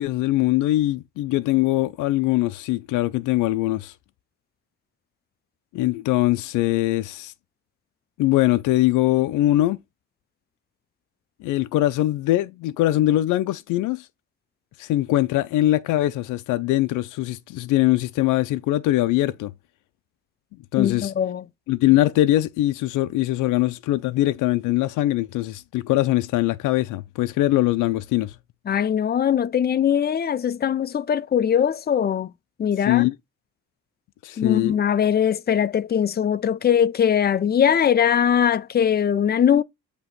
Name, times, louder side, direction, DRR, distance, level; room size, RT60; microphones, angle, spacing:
voice 1, 0.0-3.9 5.7-7.3 8.2-9.8 11.4-14.1 14.8-19.5 20.7-21.1 21.7-28.3 32.9-33.1 34.2-34.8, left 15 dB, 90° left, 0.5 m, -22 dB
voice 2, 20.8-21.4 28.7-32.3 32.6-33.0 34.4-39.6, left 8 dB, 35° left, 0.5 m, -21 dB
7.8 x 3.0 x 4.2 m
cardioid pair, 90°, 30 cm